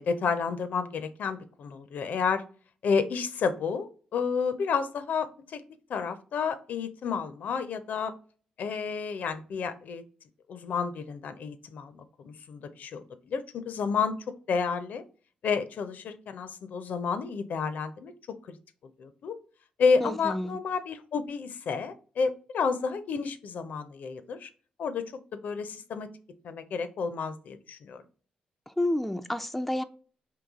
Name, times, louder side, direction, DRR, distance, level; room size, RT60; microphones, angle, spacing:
voice 1, 0.0-2.4 2.8-5.6 5.9-8.1 8.6-10.0 10.5-15.0 15.4-18.1 19.0-19.4 19.8-24.5 24.8-25.0 25.4-26.1 26.4-28.0, left 5 dB, 65° left, 0.5 m, -30 dB
voice 2, 20.0-20.6 28.8-29.8, left 1 dB, 5° left, 0.4 m, -29 dB
3.9 x 2.7 x 3.5 m
supercardioid pair, 50°, 3 cm